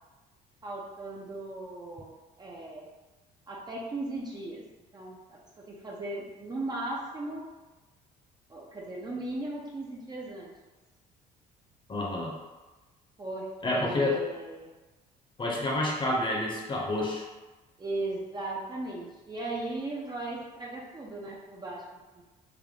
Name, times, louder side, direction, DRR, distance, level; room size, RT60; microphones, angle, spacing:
voice 1, 0.6-2.1 2.4-2.9 3.5-4.6 4.9-5.4 5.7-7.4 8.5-10.5 13.2-14.7 17.8-21.8 22.2-22.3, right 2 dB, 25° right, -3 dB, 0.6 m, -37 dB
voice 2, 11.9-12.3 13.6-14.2 15.4-17.3, left 2 dB, 30° left, -2 dB, 0.8 m, -29 dB
3.4 x 2.2 x 3.7 m, 1.2 s
cardioid pair, 110°, 17 cm